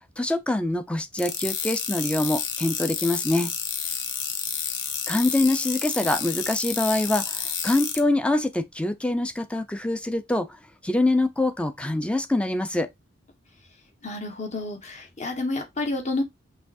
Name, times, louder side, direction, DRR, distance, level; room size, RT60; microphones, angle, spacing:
voice 1, 0.2-3.5 5.1-10.5 10.8-12.9, left 2 dB, 5° left, 0.5 m, -24 dB
sound 1, 1.2-8.0, left 7 dB, 90° left, 0.9 m, -30 dB
voice 2, 14.0-16.2, left 2 dB, 40° left, 1.3 m, -29 dB
5.6 x 3.1 x 2.6 m
head